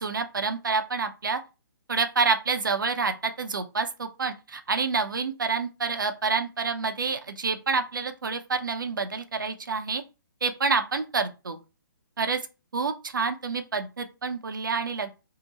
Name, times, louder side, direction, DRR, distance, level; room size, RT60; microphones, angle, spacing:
voice 1, 0.0-1.4 1.9-10.0 10.4-11.6 12.2-12.4 12.7-15.1, right 4 dB, 70° right, 0.6 m, -28 dB
2.8 x 2.1 x 4.0 m
figure-of-eight pair, 130°, 11 cm